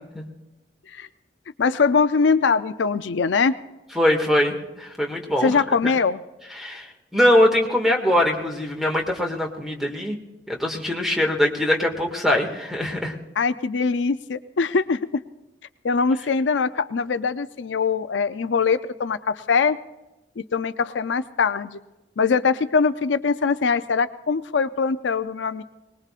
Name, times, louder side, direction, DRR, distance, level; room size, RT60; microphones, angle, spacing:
voice 1, 1.6-3.5 5.4-6.2 13.4-15.2 15.8-19.8 20.4-21.8 22.2-25.6, left 5 dB, 80° left, 12 dB, 0.5 m, -22 dB
voice 2, 4.0-5.6 5.8-5.9 6.6-6.9 7.1-10.2 10.5-13.1, left 1 dB, ahead, 1 dB, 1.9 m, -22 dB
23.0 x 20.0 x 2.5 m, 1.0 s
head